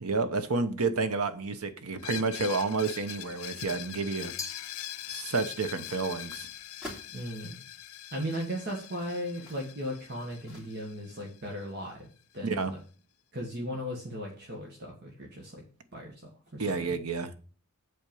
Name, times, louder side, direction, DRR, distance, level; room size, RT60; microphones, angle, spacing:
voice 1, 0.0-4.3 5.1-6.5 12.4-12.7 16.6-17.3, right 4 dB, 85° right, 1.0 m, -30 dB
Screech, 2.0-11.6, left 12 dB, 85° left, 0.7 m, -43 dB
Glass, 4.4-5.6, left 5 dB, 15° left, 0.6 m, -43 dB
sound 1, 5.7-7.1 7.8-7.9 8.4-11.1 11.4-11.5, left 1 dB, 5° right, 3.1 m, -50 dB
voice 2, 7.1-7.6 8.1-12.1 12.3-12.8 13.3-15.6 15.9-16.2 16.5-17.0, equal, 50° right, 1.7 m, -37 dB
7.9 x 4.4 x 7.0 m
head